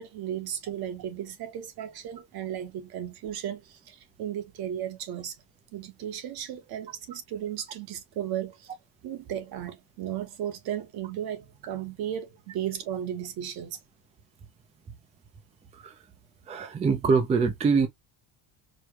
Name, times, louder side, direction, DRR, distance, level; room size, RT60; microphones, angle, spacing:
voice 1, 0.0-5.4 5.7-8.7 9.0-13.8, right 10 dB, 55° right, 1.3 m, -35 dB
voice 2, 16.5-17.9, right 5 dB, 15° right, 0.5 m, -24 dB
4.6 x 2.2 x 2.9 m
cardioid pair, 150°, 44 cm